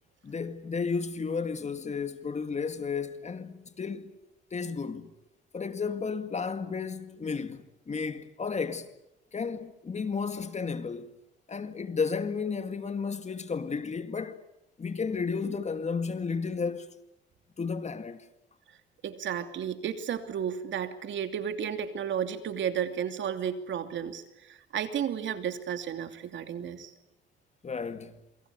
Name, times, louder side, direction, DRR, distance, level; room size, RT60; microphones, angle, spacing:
voice 1, 0.2-4.1 4.5-5.1 5.5-8.9 9.3-11.1 11.5-14.4 14.8-16.9 17.6-18.3 27.6-28.2, left 5 dB, 35° left, 2.2 m, -33 dB
voice 2, 19.0-26.9, right 8 dB, 70° right, 2.8 m, -33 dB
27.5 x 25.0 x 8.3 m
cardioid pair, 90°, 20 cm